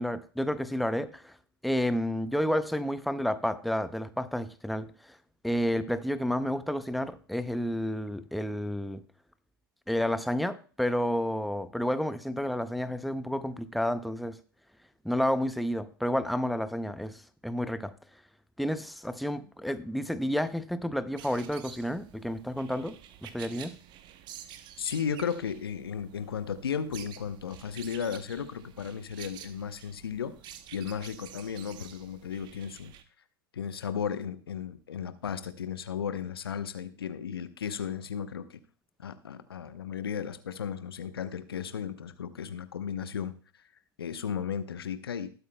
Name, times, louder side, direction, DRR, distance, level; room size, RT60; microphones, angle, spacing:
voice 1, 0.0-1.4 1.6-5.2 5.4-9.0 9.9-14.4 15.0-17.9 18.6-23.0 23.2-23.7, equal, ahead, 13 dB, 0.6 m, -30 dB
sound 1, 21.2-33.0, right 10 dB, 35° right, 0.9 m, -49 dB
voice 2, 24.8-30.4 30.7-32.9 33.5-38.6 39.0-43.4 44.0-45.3, left 7 dB, 75° left, 12 dB, 0.9 m, -35 dB
19.5 x 8.3 x 2.2 m, 0.39 s
figure-of-eight pair, 95°, 13 cm